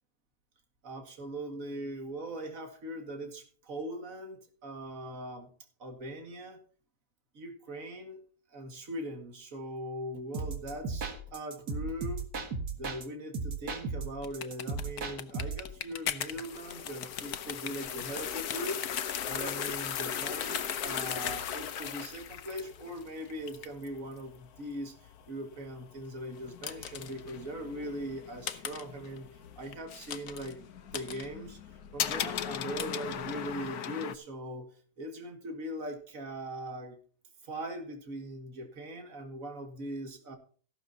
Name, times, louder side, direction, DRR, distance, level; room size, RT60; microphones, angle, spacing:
voice 1, 0.8-5.5 5.8-6.6 7.3-8.2 8.5-12.3 12.7-29.3 29.6-31.6 31.9-34.7 35.0-37.0 37.4-40.4, right 1 dB, 60° right, 5 dB, 2.5 m, -40 dB
sound 1, 10.3-13.1 13.3-15.7, right 4 dB, 90° right, 2.3 m, -36 dB
sound 2, 14.2-34.1, left 9 dB, 85° left, 1.4 m, -38 dB
15.0 x 12.0 x 2.9 m, 0.42 s
omnidirectional pair, 1.6 m